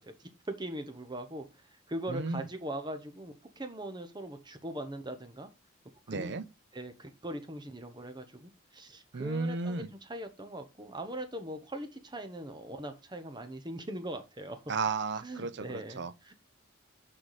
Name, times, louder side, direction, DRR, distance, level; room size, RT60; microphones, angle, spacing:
voice 1, 0.0-1.4 1.9-5.5 6.1-6.4 6.7-14.6 15.2-16.3, right 1 dB, 20° right, 0.9 m, -41 dB
voice 2, 2.1-2.4 6.1-6.4 9.1-9.9 14.7-16.1, right 4 dB, 55° right, 0.6 m, -33 dB
6.6 x 5.7 x 4.8 m
head